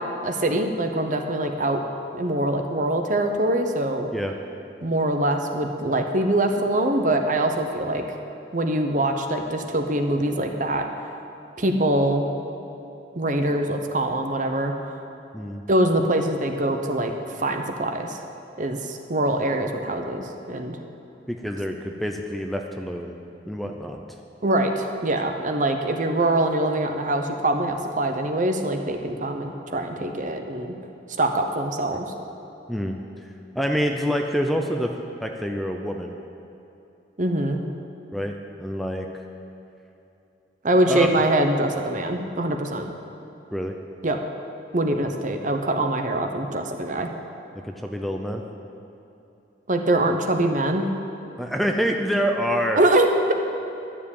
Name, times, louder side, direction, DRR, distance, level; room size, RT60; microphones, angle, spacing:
voice 1, 0.2-1.8 2.1-4.1 4.8-8.2 8.5-10.9 11.6-12.3 13.1-15.0 15.7-18.2 18.6-20.8 24.4-30.8 31.2-32.1 37.2-37.6 40.6-42.9 44.0-44.2 44.7-47.1 49.7-50.9 52.8-53.3, right 1 dB, 45° right, 5 dB, 1.0 m, -23 dB
voice 2, 21.3-23.2 23.5-24.0 32.7-33.0 33.5-34.9 35.2-36.1 38.1-39.1 40.9-41.1 43.5-43.8 47.5-48.4 51.4-52.8, equal, ahead, 3 dB, 0.6 m, -26 dB
12.0 x 7.4 x 8.7 m, 2.9 s
head